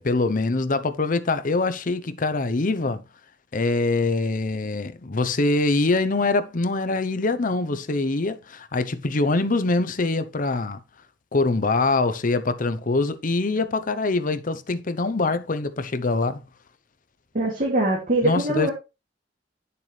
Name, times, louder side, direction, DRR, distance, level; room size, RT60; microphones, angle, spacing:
voice 1, 0.0-3.0 3.5-10.8 11.3-16.4 18.2-18.7, left 3 dB, 50° left, 0.7 m, -24 dB
voice 2, 17.3-18.7, right 1 dB, 50° right, 2.4 m, -22 dB
10.5 x 6.9 x 3.2 m
head